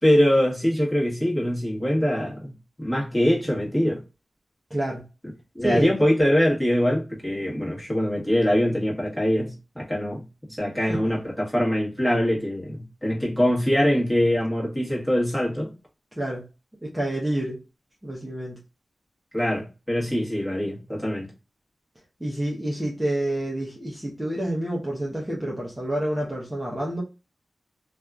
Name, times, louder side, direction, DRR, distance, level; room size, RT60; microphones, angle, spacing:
voice 1, 0.0-4.0 5.5-15.7 19.3-21.3, equal, 10° left, 1.4 m, -23 dB
voice 2, 4.7-5.0 5.6-5.9 10.8-11.0 16.2-16.4 16.8-17.6 18.0-18.6 22.2-27.0, right 1 dB, 10° right, 0.8 m, -28 dB
2.7 x 2.4 x 2.3 m
cardioid pair, 50°, 0 cm